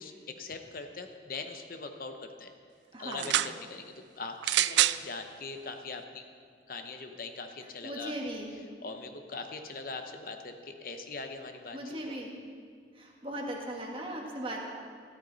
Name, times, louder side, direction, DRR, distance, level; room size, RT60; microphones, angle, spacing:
voice 1, 0.0-2.5 3.0-6.2 6.7-8.1 8.8-12.1, left 4 dB, 50° left, 6 dB, 0.7 m, -41 dB
voice 2, 2.9-3.4 7.8-8.5 11.7-12.3 12.9-14.7, right 1 dB, 30° right, 0 dB, 1.6 m, -38 dB
sound 1, 3.1-3.5 4.4-5.0 5.9-6.0, right 14 dB, 80° right, 0.3 m, -26 dB
13.5 x 13.0 x 4.0 m, 2.1 s
head